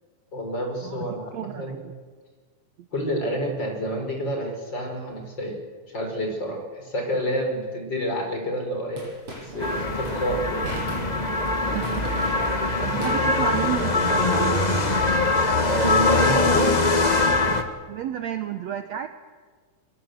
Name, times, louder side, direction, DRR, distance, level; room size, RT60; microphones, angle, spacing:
voice 1, 0.3-1.9 2.9-5.6 5.9-10.7 15.7-16.7, equal, 30° left, 2 dB, 5.3 m, -28 dB
voice 2, 1.3-1.9 11.7-12.3 12.8-14.9 17.9-19.1, right 10 dB, 65° right, 8 dB, 1.8 m, -31 dB
sound 1, 9.0-14.0, right 1 dB, 40° right, 8.5 m, -39 dB
sound 2, 9.6-17.6, left 3 dB, 80° left, 0.4 m, -22 dB
23.0 x 23.0 x 8.0 m, 1.5 s
omnidirectional pair, 3.8 m